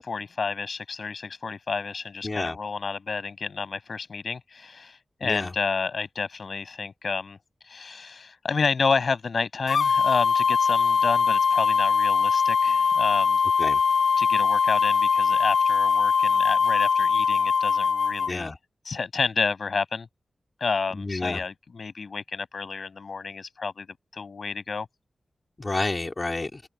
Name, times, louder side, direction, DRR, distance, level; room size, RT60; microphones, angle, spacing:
voice 1, 0.0-7.4 7.6-13.4 14.2-18.5 18.8-20.1 20.6-23.9 24.1-24.9, left 4 dB, 60° left, 7.7 m, -30 dB
voice 2, 2.2-2.6 5.2-5.5 13.6-13.8 18.3-18.5 20.9-21.4 25.6-26.6, left 2 dB, 30° left, 2.1 m, -29 dB
sound 1, 9.7-18.3, left 6 dB, 80° left, 4.1 m, -21 dB
wide cardioid pair, 115°, 0 cm